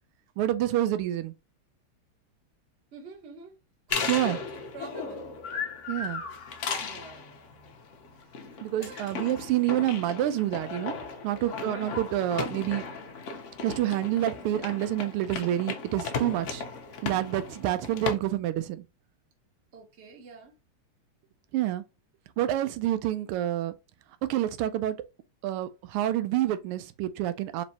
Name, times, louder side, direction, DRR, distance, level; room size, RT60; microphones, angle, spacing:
voice 1, 0.4-1.3 4.1-4.4 5.9-6.2 8.6-12.8 13.6-16.6 17.0-18.8 21.5-21.8 22.4-23.7 24.3-25.0 25.4-27.6, right 13 dB, 85° right, 1.5 m, -28 dB
voice 2, 2.9-3.6 3.9-5.3 6.2-6.3 6.8-7.3 8.5-9.1 9.7-9.8 11.4-11.7 19.7-20.5, right 4 dB, 45° right, 1.0 m, -47 dB
sound 1, 3.9-18.2, left 5 dB, 90° left, 0.6 m, -36 dB
4.5 x 3.0 x 2.8 m
omnidirectional pair, 2.4 m